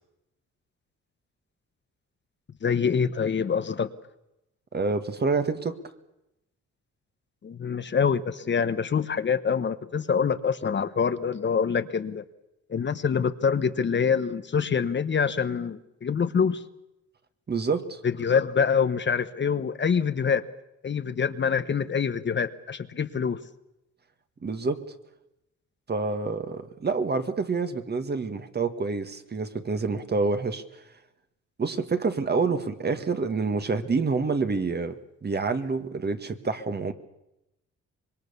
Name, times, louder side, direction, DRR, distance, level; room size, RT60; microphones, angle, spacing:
voice 1, 2.6-3.9 7.4-12.2 12.7-16.6 18.0-20.4 20.8-23.4, left 6 dB, 40° left, 11 dB, 1.1 m, -25 dB
voice 2, 4.7-5.8 17.5-18.0 24.4-24.8 25.9-30.6 31.6-36.9, right 4 dB, 35° right, 9 dB, 1.7 m, -27 dB
25.5 x 21.5 x 6.9 m, 0.89 s
cardioid pair, 90°, 30 cm